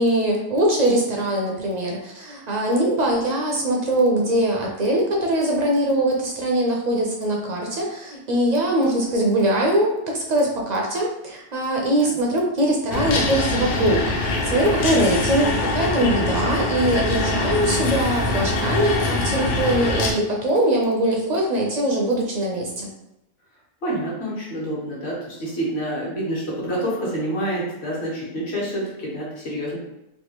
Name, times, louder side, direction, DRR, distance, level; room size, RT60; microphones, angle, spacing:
voice 1, 0.0-22.9, right 1 dB, 55° right, -1 dB, 0.5 m, -22 dB
sound 1, 12.9-20.1, left 2 dB, 85° left, 0.9 m, -23 dB
voice 2, 23.8-29.8, right 1 dB, 65° left, -6 dB, 1.4 m, -27 dB
3.4 x 2.3 x 2.8 m, 0.91 s
omnidirectional pair, 1.2 m